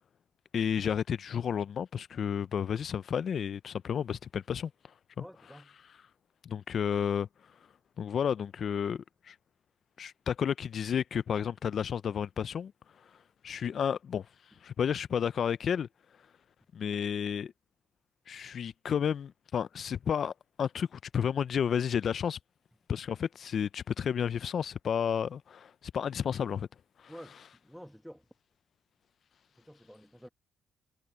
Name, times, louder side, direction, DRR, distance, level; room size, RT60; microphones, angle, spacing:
voice 1, 0.5-4.7 5.2-5.3 6.4-7.3 8.0-9.3 10.0-12.7 13.4-14.3 14.6-15.9 16.7-17.5 18.3-20.3 20.6-22.4 22.9-26.7 27.0-27.1, left 8 dB, 55° left, 0.5 m, -31 dB
voice 2, 5.2-5.7 27.1-28.2 29.5-30.3, equal, ahead, 1.8 m, -50 dB
cardioid pair, 90°, 0 cm